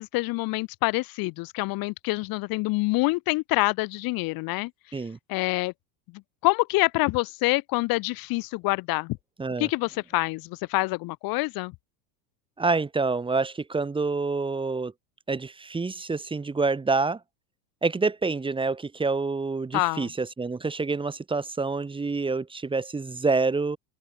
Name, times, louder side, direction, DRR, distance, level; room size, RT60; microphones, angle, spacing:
voice 1, 0.0-4.7 5.3-5.7 6.4-9.2 9.6-11.7 19.7-20.1, left 23 dB, 45° left, 1.7 m, -26 dB
voice 2, 9.4-9.7 12.6-14.9 15.3-17.2 17.8-23.8, right 4 dB, 10° right, 2.2 m, -27 dB
open air
supercardioid pair, 150°, 49 cm